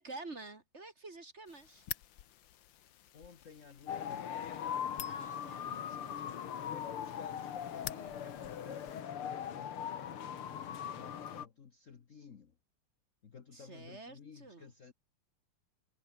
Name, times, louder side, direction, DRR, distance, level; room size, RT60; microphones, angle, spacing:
voice 1, 0.0-1.9 5.0-6.5 13.5-14.7, right 3 dB, 30° right, 2.4 m, -49 dB
sound 1, 1.5-9.0, left 12 dB, 65° left, 1.6 m, -50 dB
voice 2, 3.1-4.9 6.6-12.5 13.2-14.9, left 6 dB, 40° left, 1.4 m, -55 dB
sound 2, 3.9-11.5, left 9 dB, 80° left, 2.5 m, -40 dB
omnidirectional pair, 2.4 m